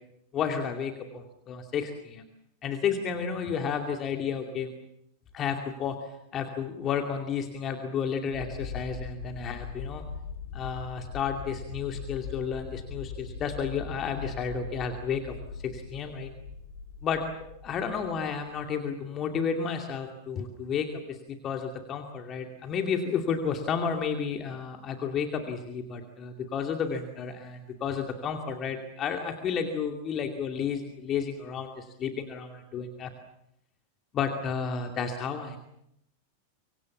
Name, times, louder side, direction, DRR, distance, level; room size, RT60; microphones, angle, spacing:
voice 1, 0.3-2.2 2.6-4.7 5.3-10.0 10.5-16.3 17.0-17.2 17.6-33.1 34.1-35.6, left 6 dB, 30° left, 4 dB, 2.6 m, -32 dB
sound 1, 8.3-18.6, left 6 dB, 65° left, 3.2 m, -41 dB
25.0 x 25.0 x 7.3 m, 0.79 s
figure-of-eight pair, 90°, 0 cm